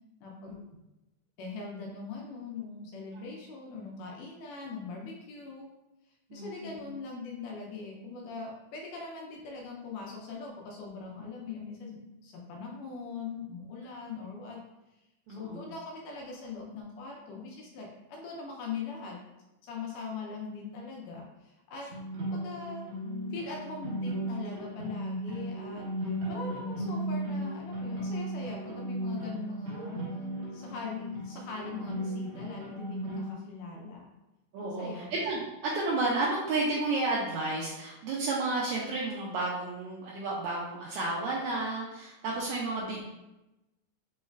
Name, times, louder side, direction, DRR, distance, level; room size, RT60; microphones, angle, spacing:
voice 1, 0.2-0.6 1.4-5.7 6.3-14.6 15.4-19.2 19.6-21.9 22.2-22.8 23.3-25.9 26.3-30.0 30.5-34.1 34.8-35.1, left 4 dB, 80° left, -1 dB, 2.2 m, -41 dB
voice 2, 6.3-6.8 15.3-15.7 26.2-26.6 34.5-43.1, right 2 dB, 80° right, -4 dB, 1.8 m, -32 dB
sound 1, 21.9-33.3, right 1 dB, 60° right, 2.0 m, -36 dB
5.3 x 3.1 x 2.3 m, 0.98 s
omnidirectional pair, 3.7 m